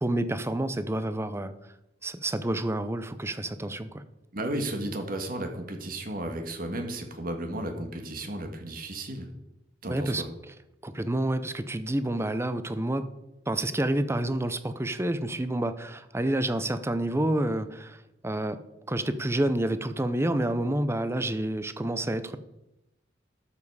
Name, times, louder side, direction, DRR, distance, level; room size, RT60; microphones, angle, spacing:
voice 1, 0.0-1.5 2.0-4.0 9.9-10.2 10.8-13.0 13.5-18.6 18.9-22.4, right 1 dB, 15° right, 12 dB, 0.6 m, -29 dB
voice 2, 4.3-9.3 9.8-10.3, right 1 dB, 50° right, 5 dB, 1.7 m, -34 dB
12.5 x 7.2 x 4.8 m, 0.92 s
head